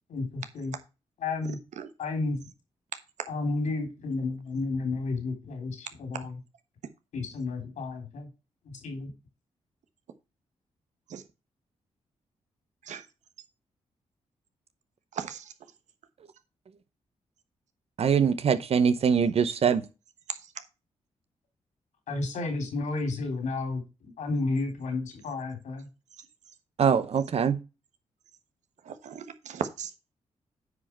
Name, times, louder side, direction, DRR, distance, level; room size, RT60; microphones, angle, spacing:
voice 1, 0.1-0.7 1.2-1.6 2.0-2.5 3.3-6.4 7.1-8.3 8.6-9.1 22.1-25.9, left 3 dB, 90° left, 3.4 m, -32 dB
voice 2, 15.1-15.5 20.3-20.4 28.8-29.9, right 8 dB, 80° right, 1.2 m, -36 dB
voice 3, 18.0-19.8 26.8-27.6, right 7 dB, 55° right, 0.9 m, -23 dB
9.5 x 5.1 x 4.5 m
cardioid pair, 110°, 12 cm